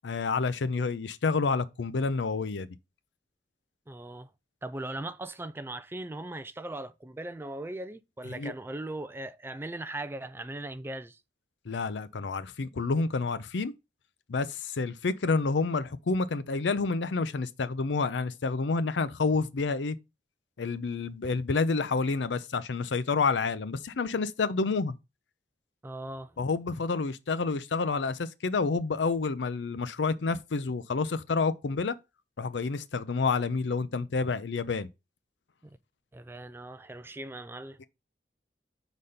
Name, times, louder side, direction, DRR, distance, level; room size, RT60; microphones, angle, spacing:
voice 1, 0.0-2.7 8.4-8.5 11.7-13.7 14.3-20.0 20.6-24.9 26.4-32.0 32.4-34.9, left 4 dB, 85° left, 0.5 m, -29 dB
voice 2, 3.9-4.3 4.6-11.2 25.8-26.3 35.6-35.8 36.1-37.8, right 1 dB, 15° right, 0.4 m, -39 dB
5.5 x 4.2 x 4.9 m
head